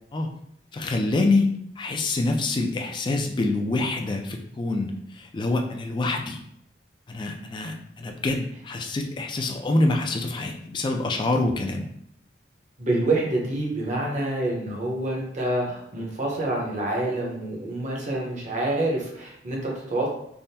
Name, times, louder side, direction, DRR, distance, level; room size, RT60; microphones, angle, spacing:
voice 1, 0.7-1.5 1.8-6.4 7.1-11.9, left 2 dB, 25° left, 3 dB, 0.3 m, -26 dB
voice 2, 12.8-20.1, right 2 dB, 45° right, -2 dB, 0.8 m, -27 dB
3.4 x 2.0 x 2.7 m, 0.73 s
head